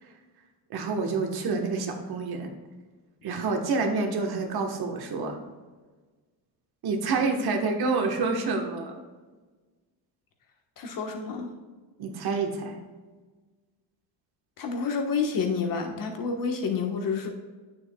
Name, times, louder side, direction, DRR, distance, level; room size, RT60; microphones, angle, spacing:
voice 1, 0.7-2.5 3.2-5.4 6.8-8.9 12.0-12.8, right 4 dB, 60° right, 3 dB, 1.3 m, -28 dB
voice 2, 10.8-11.5 14.6-17.3, left 5 dB, 50° left, 3 dB, 1.3 m, -29 dB
8.9 x 7.0 x 2.3 m, 1.3 s
cardioid pair, 115°, 43 cm